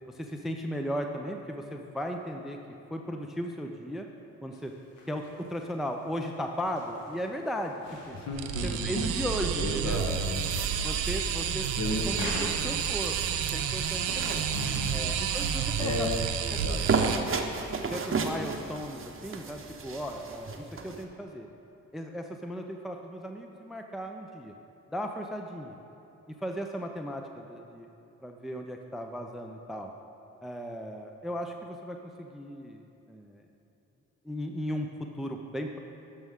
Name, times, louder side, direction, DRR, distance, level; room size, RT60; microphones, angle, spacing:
voice 1, 0.1-2.6 2.9-4.1 4.4-4.7 5.1-8.2 8.6-10.1 10.8-13.1 13.5-14.4 14.9-16.1 16.5-16.8 17.9-21.5 21.9-24.5 24.9-25.8 26.3-27.9 28.2-29.9 30.4-33.4 34.2-34.9 35.2-35.8, equal, ahead, 4 dB, 0.6 m, -36 dB
sound 1, 4.5-12.5, left 2 dB, 85° left, 1.1 m, -48 dB
voice 2, 8.1-9.1 9.6-10.4 11.8-12.5 14.5-14.9 15.5-16.2 16.5-17.0, left 2 dB, 50° left, 1 dB, 1.4 m, -34 dB
sound 2, 8.3-17.2, right 7 dB, 90° right, 0.5 m, -30 dB
sound 3, 9.9-21.0, right 4 dB, 35° right, 0.9 m, -35 dB
12.5 x 5.4 x 3.6 m, 2.9 s
hypercardioid pair, 40°, 37 cm